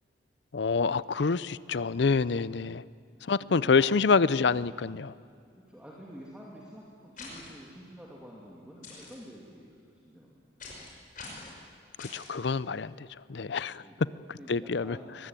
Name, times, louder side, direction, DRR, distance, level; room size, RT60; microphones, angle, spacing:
voice 1, 0.5-2.8 3.3-5.1 12.0-12.9 13.3-13.8 14.5-15.0, left 4 dB, 65° left, 18 dB, 0.5 m, -26 dB
voice 2, 3.3-3.9 5.6-10.7 13.8-15.2, equal, 5° right, -4 dB, 2.6 m, -49 dB
sound 1, 7.2-7.5 8.8-9.1 10.6-10.9 11.1-11.5 12.0-12.3, left 3 dB, 45° left, 5.5 m, -44 dB
23.5 x 19.5 x 9.1 m, 2.3 s
head